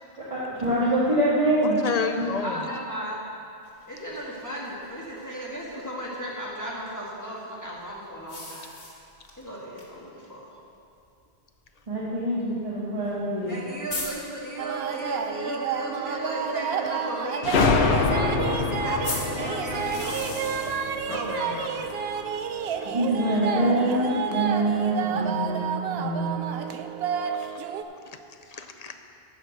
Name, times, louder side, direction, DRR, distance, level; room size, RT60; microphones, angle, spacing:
voice 1, 0.3-1.8 2.2-2.3 11.9-13.5 22.8-26.4, right 1 dB, 30° right, -10 dB, 1.9 m, -25 dB
voice 2, 1.6-2.6 21.1-21.9 28.5-29.0, left 5 dB, 45° left, 6 dB, 0.6 m, -31 dB
voice 3, 2.4-3.2 3.9-8.7 9.4-10.5 13.5-20.2 20.9-21.6, right 1 dB, 15° left, -5 dB, 1.5 m, -35 dB
sound 1, 3.6-5.7 8.3-9.4 9.8-9.9 10.2-10.3 11.3-11.4 13.1-13.2 13.5-13.6 13.9-14.1 19.0-20.8, left 2 dB, 70° left, 1.9 m, -37 dB
sound 2, 14.6-27.8, right 7 dB, 70° right, 0.8 m, -30 dB
sound 3, 17.4-21.9, left 4 dB, 85° left, 1.0 m, -26 dB
12.0 x 4.9 x 7.8 m, 2.6 s
omnidirectional pair, 1.1 m